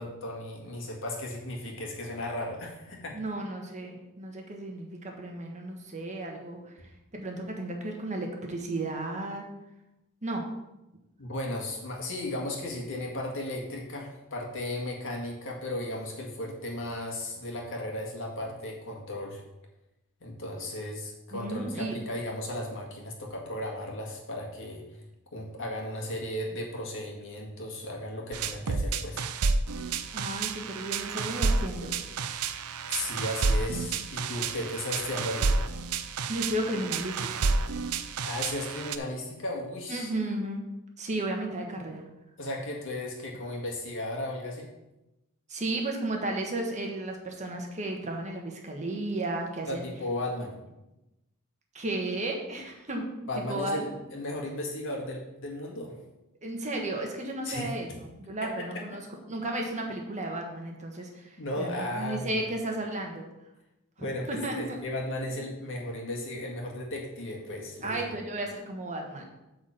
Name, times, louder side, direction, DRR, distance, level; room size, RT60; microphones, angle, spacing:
voice 1, 0.0-3.2 11.2-19.4 20.2-24.8 25.3-29.3 32.9-35.6 38.2-40.1 42.4-44.7 49.7-50.6 53.3-56.0 57.5-57.7 58.4-58.8 61.4-62.5 64.0-68.0, left 1 dB, 60° left, 0 dB, 1.9 m, -35 dB
voice 2, 3.1-9.4 10.2-10.4 21.3-22.0 30.1-32.0 36.3-37.5 39.9-40.6 41.0-42.0 45.5-49.9 51.7-53.9 56.4-59.0 59.3-63.3 64.3-64.8 67.8-69.2, right 2 dB, 35° right, 1 dB, 1.4 m, -34 dB
sound 1, 28.3-39.0, right 4 dB, 90° right, 0.6 m, -30 dB
8.7 x 4.3 x 7.1 m, 0.96 s
head